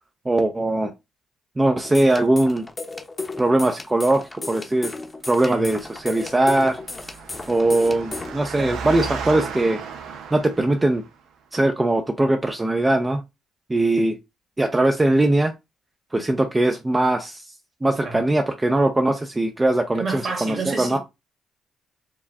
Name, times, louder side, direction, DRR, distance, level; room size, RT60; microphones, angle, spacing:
voice 1, 0.3-0.9 1.6-2.7 3.4-4.9 5.3-6.8 7.5-9.8 10.3-11.0 11.5-13.2 13.7-14.2 14.6-15.5 16.1-17.4 17.8-21.0, right 2 dB, 15° right, 0.5 m, -20 dB
sound 1, 1.8-8.3, left 3 dB, 25° left, 0.8 m, -34 dB
Engine, 5.6-11.1, right 6 dB, 80° right, 0.6 m, -35 dB
voice 2, 8.4-8.8 18.0-18.2 19.9-21.0, right 4 dB, 45° right, 1.7 m, -30 dB
4.7 x 2.4 x 3.5 m
cardioid pair, 90°, 0 cm